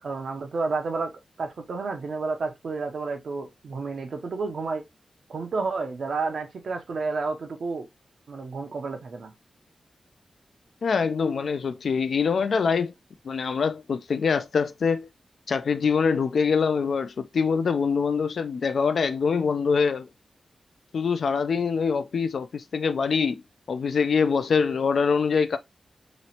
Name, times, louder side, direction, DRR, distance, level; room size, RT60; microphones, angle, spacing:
voice 1, 0.0-1.1 1.4-4.8 5.3-7.9 8.3-9.3, right 4 dB, 75° right, 0.7 m, -30 dB
voice 2, 10.8-12.9 13.2-15.1 15.5-20.1 20.9-23.4 23.7-25.6, left 5 dB, 80° left, 0.4 m, -24 dB
3.0 x 3.0 x 2.8 m
wide cardioid pair, 100°, 0 cm